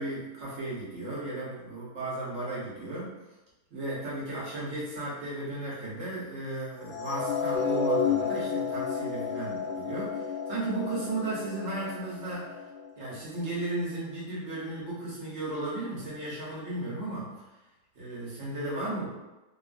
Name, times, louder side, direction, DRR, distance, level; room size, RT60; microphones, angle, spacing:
voice 1, 0.0-3.1 3.7-12.6 13.0-17.3 17.9-19.1, right 2 dB, 55° right, -7 dB, 1.2 m, -35 dB
sound 1, 6.9-13.1, left 5 dB, 90° left, 1.2 m, -31 dB
3.1 x 2.4 x 2.4 m, 1.1 s
omnidirectional pair, 1.7 m